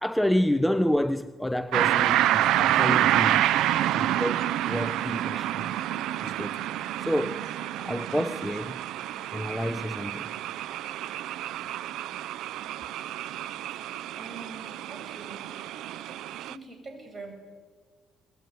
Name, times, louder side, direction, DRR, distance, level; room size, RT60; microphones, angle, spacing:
voice 1, 0.0-3.5 4.0-4.3 4.6-5.7 6.2-6.7 7.0-7.5 7.8-8.8 9.3-10.3, equal, 5° left, 0.7 m, -29 dB
sound 1, 1.7-16.5, right 13 dB, 80° right, 0.7 m, -28 dB
voice 2, 14.2-15.5 16.5-17.3, right 3 dB, 30° right, 7.5 m, -44 dB
24.5 x 20.0 x 9.4 m
cardioid pair, 105°, 0 cm